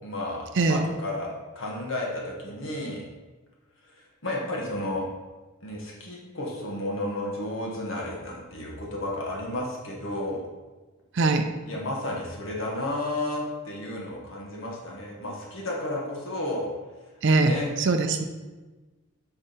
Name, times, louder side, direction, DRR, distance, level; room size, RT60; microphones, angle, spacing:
voice 1, 0.0-3.0 4.2-5.0 5.6-10.4 11.6-16.7 17.4-17.7, left 1 dB, 60° left, -3 dB, 1.2 m, -32 dB
voice 2, 0.6-0.9 11.1-11.5 17.2-18.2, right 3 dB, 55° right, 7 dB, 0.5 m, -22 dB
4.8 x 4.3 x 5.1 m, 1.2 s
head